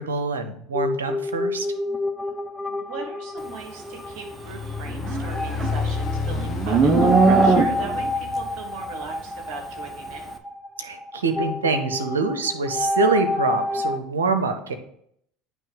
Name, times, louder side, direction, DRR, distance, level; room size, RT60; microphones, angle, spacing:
voice 1, 0.0-1.7 10.8-14.8, right 3 dB, 85° right, 7 dB, 0.8 m, -25 dB
sound 1, 0.7-14.0, left 2 dB, 5° left, 0.7 m, -29 dB
voice 2, 2.7-10.4, right 4 dB, 55° right, 3 dB, 1.8 m, -38 dB
sound 2, 4.3-9.0, left 4 dB, 40° left, 1.0 m, -30 dB
Livestock farm animals working animals, 4.9-8.1, right 4 dB, 35° right, 0.8 m, -20 dB
9.4 x 3.2 x 5.1 m, 0.68 s
hypercardioid pair, 75°, 0 cm